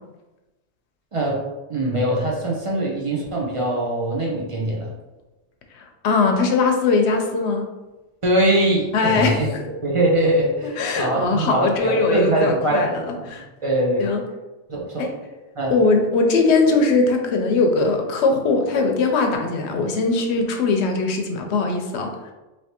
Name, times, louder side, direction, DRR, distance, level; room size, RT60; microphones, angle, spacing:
voice 1, 1.1-1.4 1.7-4.9 8.2-9.5 9.8-12.9 13.1-14.1 14.7-15.1 15.6-15.7, right 1 dB, 35° right, -3 dB, 0.6 m, -22 dB
voice 2, 5.7-7.7 8.9-9.7 10.8-13.4 14.0-14.2 15.0-15.1 15.7-22.3, left 3 dB, 70° left, 4 dB, 0.9 m, -20 dB
3.2 x 2.8 x 2.8 m, 1.1 s
omnidirectional pair, 1.2 m